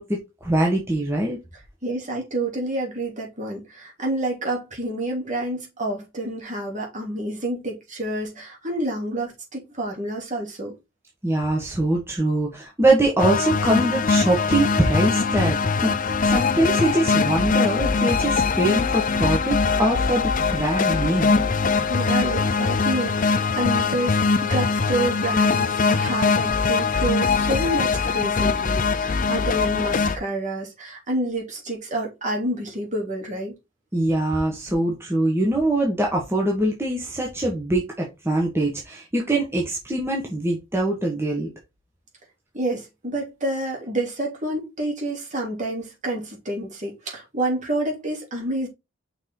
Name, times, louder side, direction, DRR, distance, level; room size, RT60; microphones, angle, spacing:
voice 1, 0.0-1.4 11.2-21.4 33.9-41.5, right 1 dB, 15° right, 1.4 m, -23 dB
voice 2, 1.8-10.7 21.3-21.5 21.9-33.5 42.5-48.7, right 1 dB, 40° right, 3.1 m, -28 dB
sound 1, 13.2-30.2, left 4 dB, 45° left, 0.6 m, -22 dB
6.0 x 4.4 x 3.8 m
head